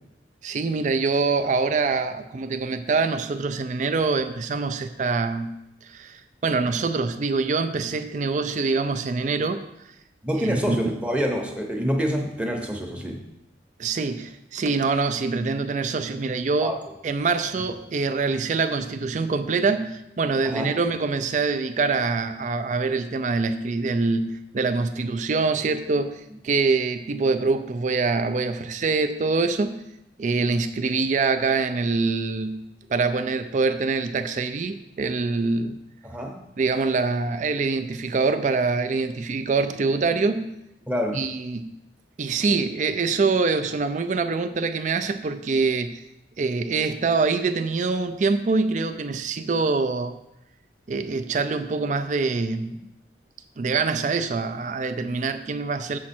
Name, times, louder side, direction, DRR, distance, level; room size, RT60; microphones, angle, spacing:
voice 1, 0.4-9.6 10.4-10.8 13.8-16.7 17.0-29.8 30.2-35.8 36.6-40.6 41.1-41.7 42.2-46.0 46.4-50.2 50.9-52.8 53.6-56.0, right 4 dB, 40° right, 8 dB, 0.4 m, -25 dB
voice 2, 10.2-13.2 16.6-16.8 20.4-20.7 36.0-36.4 40.9-41.2, equal, 5° right, 2 dB, 0.9 m, -26 dB
7.3 x 6.0 x 4.3 m, 0.85 s
head